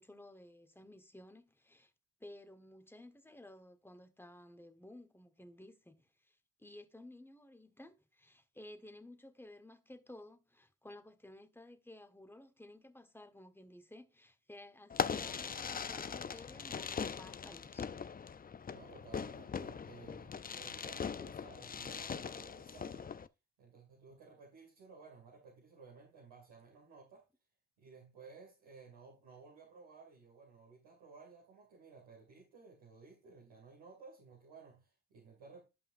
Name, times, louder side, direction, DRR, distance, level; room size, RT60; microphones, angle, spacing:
voice 1, 0.0-1.9 2.2-17.9, left 1 dB, 5° left, 1.5 m, -55 dB
Fireworks, 14.9-23.3, left 6 dB, 20° left, 0.5 m, -41 dB
voice 2, 18.7-23.1 23.6-27.3 27.8-35.6, right 4 dB, 75° right, 2.7 m, -57 dB
12.0 x 5.4 x 2.6 m
hypercardioid pair, 50°, 42 cm